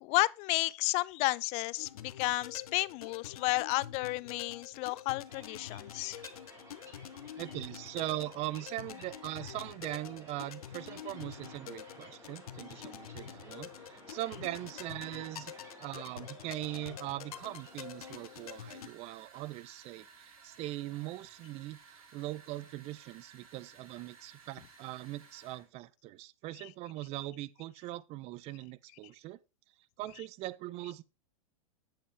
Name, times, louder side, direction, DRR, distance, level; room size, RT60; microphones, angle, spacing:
voice 1, 0.0-6.2 26.6-26.7, left 22 dB, 40° left, 0.4 m, -32 dB
sound 1, 1.8-18.9, left 10 dB, 90° left, 0.7 m, -47 dB
sound 2, 5.3-18.5, right 1 dB, 20° right, 4.9 m, -55 dB
voice 2, 7.4-29.4 30.0-31.0, right 16 dB, 35° right, 0.5 m, -41 dB
sound 3, 17.3-25.7, right 5 dB, 80° right, 3.2 m, -58 dB
8.7 x 7.3 x 3.4 m
hypercardioid pair, 125°, 18 cm